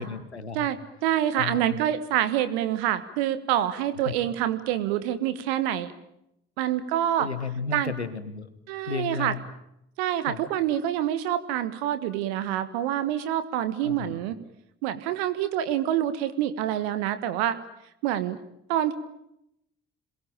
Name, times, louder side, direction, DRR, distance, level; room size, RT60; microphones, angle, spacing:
voice 1, 0.0-0.7 1.3-1.8 4.0-4.1 7.2-8.5 8.8-9.4 10.2-10.4 13.8-14.2, left 5 dB, 90° left, 12 dB, 1.4 m, -33 dB
voice 2, 0.5-5.9 6.6-7.3 7.7-7.9 8.7-9.3 10.0-14.4 14.8-17.6 18.0-18.4 18.7-18.9, right 11 dB, 70° right, 12 dB, 1.5 m, -26 dB
27.0 x 21.5 x 9.0 m, 0.82 s
figure-of-eight pair, 40°, 32 cm